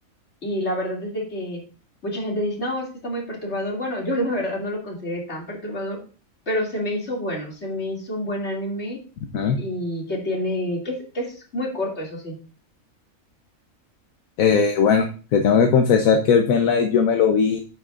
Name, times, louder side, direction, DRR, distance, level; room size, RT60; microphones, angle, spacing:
voice 1, 0.4-1.6 2.0-6.0 6.5-9.0 9.6-12.4, left 1 dB, 50° left, -1 dB, 2.9 m, -28 dB
voice 2, 14.4-15.1 15.3-17.6, left 6 dB, 75° left, 5 dB, 1.3 m, -18 dB
9.3 x 8.5 x 2.5 m, 0.38 s
omnidirectional pair, 1.4 m